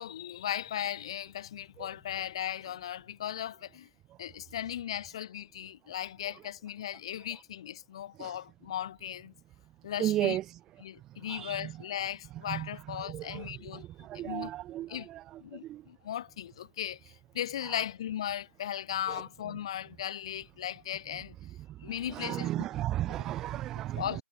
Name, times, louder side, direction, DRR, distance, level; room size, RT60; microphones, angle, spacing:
voice 1, 0.0-3.9 4.2-9.3 9.8-10.4 10.8-14.5 14.9-15.1 15.4-21.4 21.8-22.7 23.2-23.3 23.9-24.2, left 11 dB, 15° left, 2.1 m, -37 dB
voice 2, 10.0-10.4 11.3-11.6 12.5-12.7 13.1-13.4 13.7-14.9 15.7-15.8 22.1-24.0, right 14 dB, 5° right, 0.5 m, -33 dB
figure-of-eight pair, 165°, 9 cm